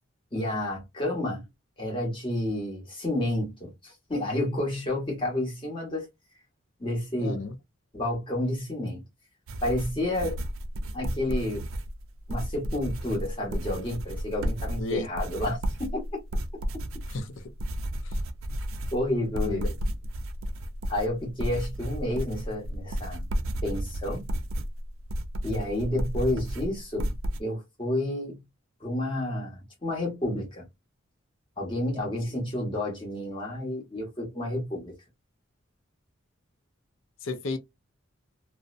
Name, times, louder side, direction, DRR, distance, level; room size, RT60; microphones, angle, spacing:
voice 1, 0.3-1.4 1.8-6.1 6.8-7.4 7.9-9.0 9.6-10.4 10.9-11.7 12.3-16.2 18.9-19.8 20.9-23.3 23.6-24.2 25.4-27.1 27.4-28.4 28.8-30.6 31.6-34.9, left 1 dB, 25° left, 1.2 m, -30 dB
voice 2, 7.2-7.5 14.8-15.1 17.1-17.3 18.0-18.1 19.4-19.7 37.2-37.6, left 3 dB, 70° left, 0.5 m, -33 dB
sound 1, 9.5-27.4, equal, 85° right, 0.4 m, -32 dB
2.6 x 2.1 x 2.4 m
head